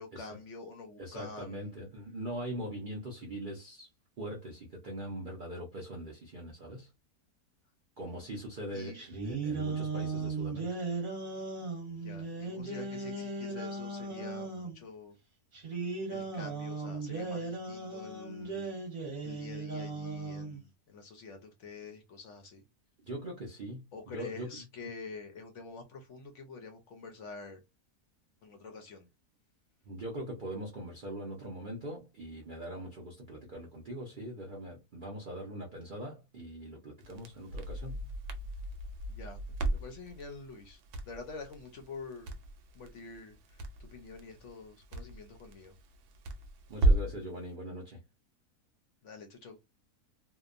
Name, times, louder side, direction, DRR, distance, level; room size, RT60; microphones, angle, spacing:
voice 1, 0.0-1.7 8.1-8.3 8.7-9.0 12.0-15.2 16.1-18.7 19.2-22.6 23.9-27.6 28.4-29.1 39.1-39.4 39.7-40.8 41.1-42.3 42.7-45.7 49.0-49.6, left 4 dB, 65° left, 0.7 m, -47 dB
voice 2, 1.0-3.9 4.2-6.9 8.0-10.8 23.0-24.5 29.9-38.1 46.7-48.0, right 1 dB, 60° right, 0.5 m, -41 dB
sound 1, 8.9-14.7 15.5-20.6, right 3 dB, 40° right, 1.1 m, -37 dB
Crackle, 37.0-47.2, right 2 dB, 85° right, 1.1 m, -35 dB
2.8 x 2.2 x 2.4 m
omnidirectional pair, 1.6 m